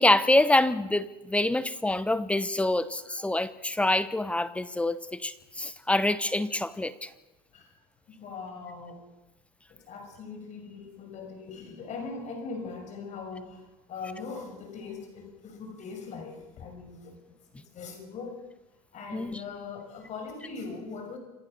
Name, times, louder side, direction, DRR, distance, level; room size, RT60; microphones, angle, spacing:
voice 1, 0.0-7.1 19.1-19.4, left 2 dB, 5° left, 14 dB, 1.0 m, -26 dB
voice 2, 8.1-9.0 9.7-13.6 13.9-17.2 17.5-18.5 18.9-21.2, left 4 dB, 40° left, 5 dB, 6.2 m, -40 dB
27.5 x 14.5 x 6.8 m, 1.0 s
supercardioid pair, 130°, 19 cm